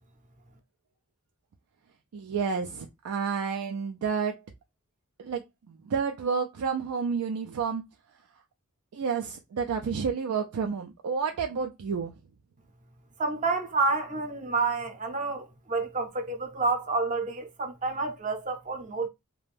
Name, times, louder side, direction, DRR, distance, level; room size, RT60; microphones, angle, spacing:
voice 1, 2.1-4.4 5.2-7.8 8.9-12.1, right 6 dB, 80° right, 0.4 m, -30 dB
voice 2, 13.2-19.1, right 3 dB, 35° right, 0.6 m, -29 dB
2.5 x 2.1 x 3.2 m
head